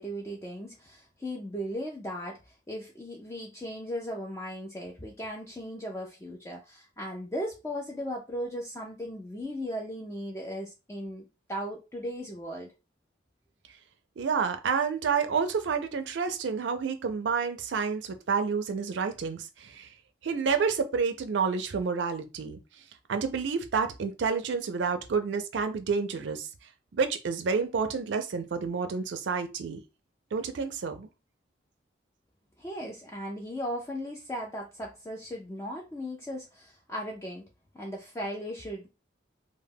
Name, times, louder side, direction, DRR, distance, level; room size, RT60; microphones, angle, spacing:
voice 1, 0.0-12.7 32.6-37.5 37.7-38.9, equal, 15° left, 0.3 m, -37 dB
voice 2, 14.2-19.9 20.2-22.6 23.1-26.5 26.9-29.8 30.3-31.1, right 5 dB, 75° right, 0.4 m, -29 dB
2.1 x 2.1 x 3.3 m
head